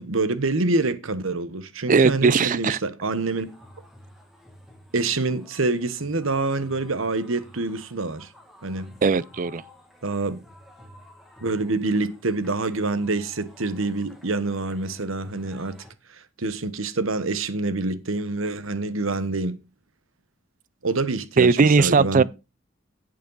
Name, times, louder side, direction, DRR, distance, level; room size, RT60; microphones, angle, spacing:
voice 1, 0.0-3.5 4.9-8.3 8.6-8.9 10.0-10.4 11.4-15.8 16.1-19.6 20.8-22.2, right 3 dB, 75° right, 1.1 m, -26 dB
voice 2, 1.9-2.8 9.0-9.6 21.4-22.2, right 4 dB, 40° right, 0.4 m, -18 dB
sound 1, 3.1-15.9, equal, ahead, 2.0 m, -51 dB
11.0 x 8.5 x 4.0 m
head